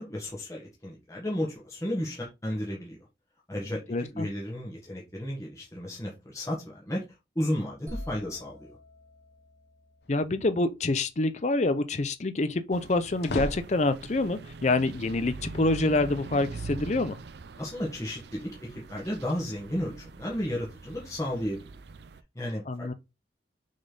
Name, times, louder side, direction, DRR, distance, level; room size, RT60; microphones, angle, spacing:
voice 1, 0.0-3.0 3.5-7.0 7.3-8.8 17.6-21.7 22.3-22.9, equal, 15° left, 1.5 m, -33 dB
voice 2, 3.9-4.3 10.1-17.2 22.7-22.9, left 2 dB, 40° left, 0.6 m, -27 dB
sound 1, 7.9-11.7, left 1 dB, 15° right, 1.6 m, -46 dB
sound 2, 10.0-10.6 12.8-14.3, left 2 dB, 65° left, 0.9 m, -36 dB
sound 3, 12.7-22.2, right 3 dB, 65° right, 0.5 m, -43 dB
6.2 x 4.1 x 3.9 m
head